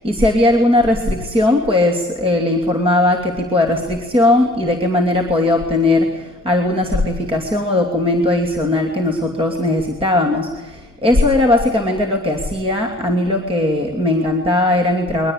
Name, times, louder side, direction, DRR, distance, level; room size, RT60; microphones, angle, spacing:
voice 1, 0.0-15.3, left 2 dB, 10° right, 3 dB, 2.7 m, -18 dB
22.5 x 19.5 x 8.2 m, 1.2 s
supercardioid pair, 140°, 45 cm